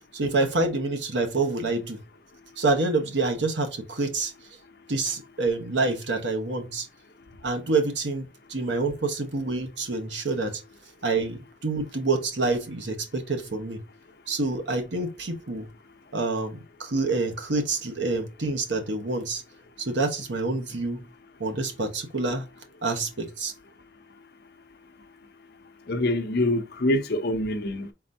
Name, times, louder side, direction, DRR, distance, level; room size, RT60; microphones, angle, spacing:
voice 1, 0.1-2.0 2.6-4.3 4.9-6.9 7.4-10.6 11.0-13.8 14.3-15.7 16.1-19.4 19.8-21.1 21.4-22.4 22.8-23.5, right 3 dB, 70° right, 1.0 m, -27 dB
voice 2, 25.9-27.9, left 1 dB, 55° left, 0.7 m, -25 dB
4.3 x 3.9 x 2.7 m
head